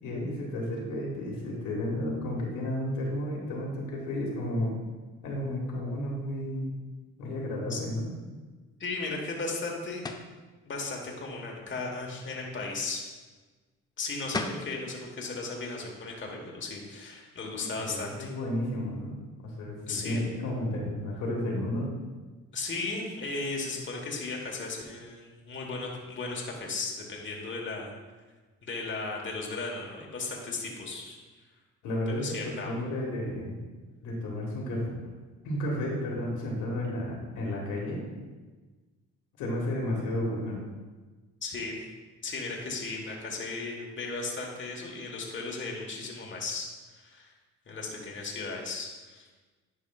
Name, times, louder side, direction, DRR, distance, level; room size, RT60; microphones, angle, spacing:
voice 1, 0.0-4.7 5.2-6.7 7.2-8.1 17.6-21.9 31.8-33.6 34.0-34.9 35.4-38.0 39.4-40.6, left 1 dB, 85° left, -2 dB, 1.6 m, -32 dB
voice 2, 8.8-10.0 10.6-13.0 14.0-18.3 19.9-20.2 22.5-27.9 28.6-31.2 32.1-32.7 41.4-41.8 42.2-47.3 47.7-49.3, left 3 dB, 40° left, -1 dB, 1.3 m, -36 dB
sound 1, 10.0-10.3 14.0-14.1 14.3-14.7, left 3 dB, 15° left, 0.4 m, -33 dB
10.5 x 4.8 x 2.3 m, 1.3 s
cardioid pair, 90°, 30 cm